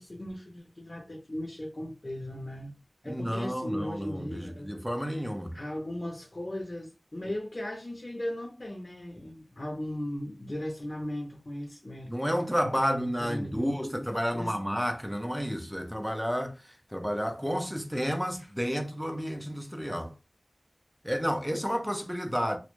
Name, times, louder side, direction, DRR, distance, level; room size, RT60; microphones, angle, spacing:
voice 1, 0.0-2.7 3.0-4.7 5.5-12.1 12.6-13.8 14.3-14.5, left 1 dB, 50° left, 0.5 m, -37 dB
voice 2, 3.0-5.6 12.1-20.1 21.0-22.6, equal, ahead, 0.5 m, -31 dB
2.1 x 2.0 x 3.0 m
wide cardioid pair, 55°, 0 cm